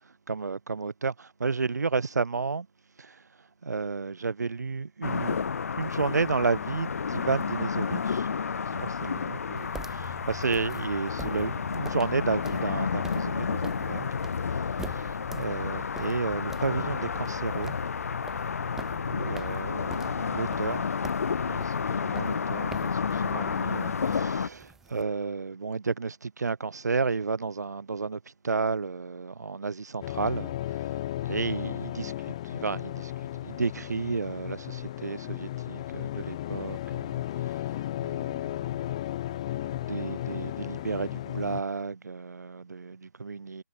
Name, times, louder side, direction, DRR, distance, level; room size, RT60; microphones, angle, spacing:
voice 1, 0.3-2.7 3.0-3.2 3.6-5.4 5.8-8.3 8.7-14.1 14.4-17.8 18.9-20.9 21.4-31.0 31.3-33.1 33.4-37.1 38.0-38.9 39.5-43.6, right 4 dB, 65° right, 2.0 m, -32 dB
sound 1, 5.0-24.5, left 6 dB, 55° left, 0.8 m, -31 dB
sound 2, 9.6-25.0, right 4 dB, 5° right, 2.6 m, -47 dB
sound 3, 30.0-41.6, left 13 dB, 20° left, 0.5 m, -34 dB
figure-of-eight pair, 155°, 10 cm